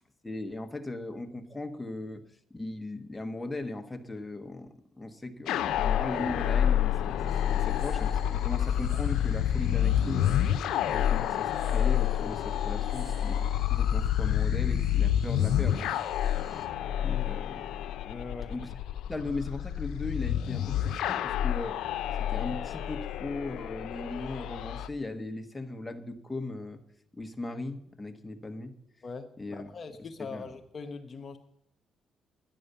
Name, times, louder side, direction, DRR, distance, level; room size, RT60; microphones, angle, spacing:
voice 1, 0.2-2.2 2.5-10.3 10.9-13.4 13.7-16.0 17.0-17.6 18.5-18.7 19.1-21.8 22.2-26.8 27.1-28.7 29.4-29.7 30.2-30.5, left 2 dB, 15° left, 4 dB, 1.4 m, -38 dB
sound 1, 5.5-24.9, left 10 dB, 85° left, 0.6 m, -28 dB
sound 2, 7.3-16.7, right 2 dB, 40° right, 1.8 m, -54 dB
voice 2, 18.1-18.5 29.0-31.4, left 4 dB, 45° left, 6 dB, 0.9 m, -41 dB
11.5 x 9.6 x 6.8 m, 0.77 s
cardioid pair, 90°, 0 cm